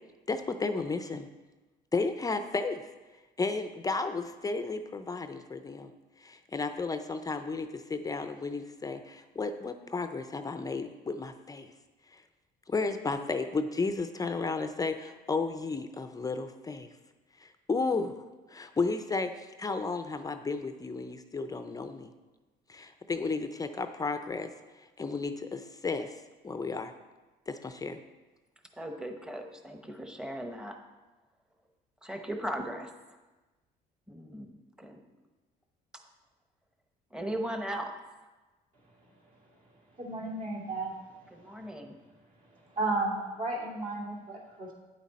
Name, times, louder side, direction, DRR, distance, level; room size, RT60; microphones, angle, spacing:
voice 1, 0.3-1.3 1.9-2.8 3.4-5.9 6.2-11.7 12.1-12.2 12.7-16.9 17.4-22.1 22.7-24.5 25.0-26.2 26.4-26.9 27.5-28.0, left 4 dB, 20° left, 8 dB, 0.5 m, -33 dB
voice 2, 28.7-30.8 32.0-32.9 34.1-35.0 35.9-36.0 37.1-38.0 41.3-42.0, right 1 dB, 5° right, 4 dB, 0.9 m, -38 dB
voice 3, 40.0-40.9 42.7-44.7, right 2 dB, 50° right, -2 dB, 2.4 m, -33 dB
9.3 x 7.3 x 4.2 m, 1.2 s
cardioid pair, 110°, 17 cm